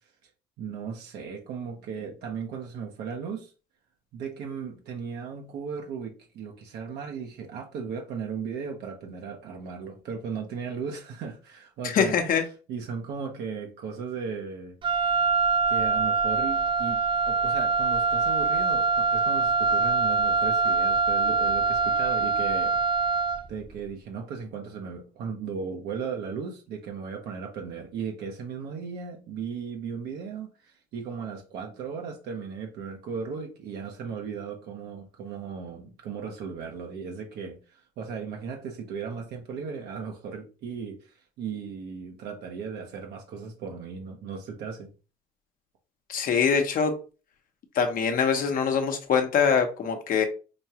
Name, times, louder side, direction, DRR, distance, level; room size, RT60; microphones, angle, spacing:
voice 1, 0.6-3.5 4.1-12.4 12.7-14.8 15.7-17.0 17.3-22.8 23.5-44.9, right 6 dB, 75° right, 2 dB, 0.8 m, -36 dB
voice 2, 11.8-12.4 46.1-46.9 47.7-50.3, left 6 dB, 55° left, 6 dB, 0.8 m, -23 dB
Wind instrument woodwind instrument, 14.8-23.5, right 4 dB, 30° right, 0.4 m, -24 dB
5.0 x 2.3 x 2.9 m, 0.34 s
cardioid pair, 110°, 17 cm